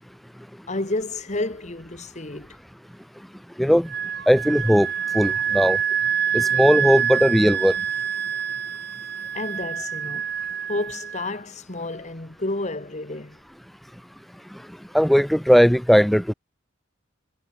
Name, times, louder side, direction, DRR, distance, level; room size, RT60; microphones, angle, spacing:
voice 1, 0.7-2.5 9.3-10.3 10.7-13.4, left 2 dB, 40° left, 1.8 m, -30 dB
Wind instrument woodwind instrument, 3.9-11.3, right 8 dB, 55° right, 4.5 m, -26 dB
voice 2, 4.3-4.9 5.1-5.8 6.3-7.7 14.9-16.3, equal, ahead, 0.4 m, -18 dB
head